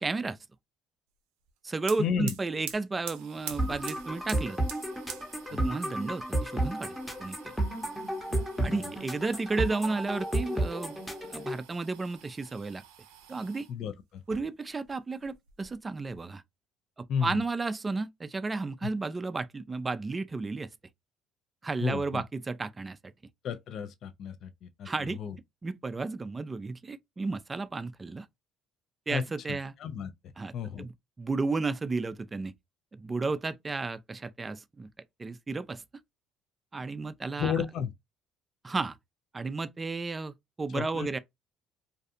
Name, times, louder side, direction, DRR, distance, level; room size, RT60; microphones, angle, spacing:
voice 1, 0.0-0.4 1.6-4.6 5.5-6.9 7.2-7.6 8.6-11.0 11.3-12.8 13.3-13.7 14.3-16.4 17.0-20.7 21.6-23.0 24.8-25.2 25.6-28.3 29.1-29.7 30.4-30.9 31.2-32.5 32.9-34.9 35.2-35.8 36.7-37.5 38.6-39.0 39.3-41.2, right 3 dB, 25° right, 0.3 m, -33 dB
sound 1, 1.5-1.6 1.8-13.7 14.2-14.9 15.2-16.2, right 9 dB, 90° right, 0.4 m, -47 dB
voice 2, 2.0-2.3 5.5-5.7 8.3-8.8 13.7-14.2 17.1-17.4 18.8-18.9 21.8-22.2 23.4-25.4 29.1-30.1 30.5-30.9 37.4-37.9 40.7-41.2, left 7 dB, 60° left, 0.3 m, -33 dB
sound 2, 3.6-11.6, right 1 dB, 5° left, 0.8 m, -32 dB
2.5 x 2.3 x 2.6 m
supercardioid pair, 80°, 0 cm